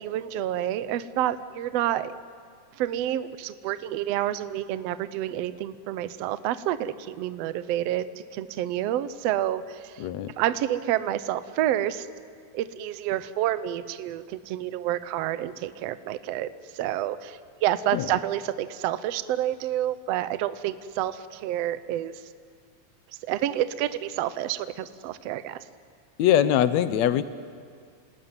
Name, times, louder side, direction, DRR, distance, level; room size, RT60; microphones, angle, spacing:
voice 1, 0.0-2.1 2.8-8.1 8.3-10.1 10.4-12.1 12.5-22.1 23.2-25.6, right 12 dB, 80° right, 13 dB, 1.4 m, -29 dB
voice 2, 10.0-10.3 17.9-18.1 26.2-27.2, left 11 dB, 70° left, 13 dB, 1.8 m, -22 dB
29.0 x 19.5 x 9.7 m, 2.1 s
omnidirectional pair, 3.9 m